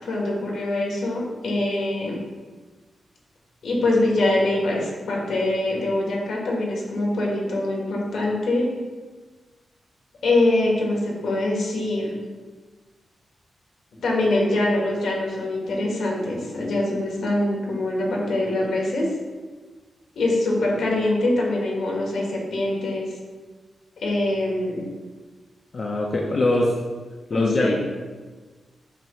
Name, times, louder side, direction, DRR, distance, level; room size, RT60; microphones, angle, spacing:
voice 1, 0.0-2.2 3.6-8.7 10.2-12.1 14.0-19.1 20.2-23.1 24.0-24.9 27.3-27.7, left 2 dB, 80° left, -2 dB, 1.7 m, -24 dB
voice 2, 25.7-26.7 27.3-27.7, left 2 dB, 35° left, -2 dB, 0.7 m, -22 dB
7.5 x 3.0 x 5.6 m, 1.4 s
wide cardioid pair, 170°, 0 cm